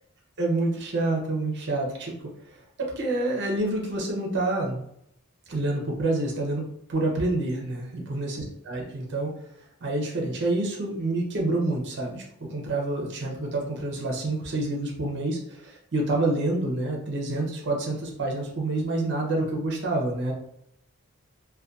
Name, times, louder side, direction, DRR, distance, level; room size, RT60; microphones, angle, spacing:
voice 1, 0.4-2.1 2.4-2.6 3.0-4.8 5.5-6.6 6.9-9.3 9.6-20.3, right 2 dB, 50° right, -1 dB, 0.6 m, -28 dB
2.6 x 2.3 x 2.3 m, 0.74 s
head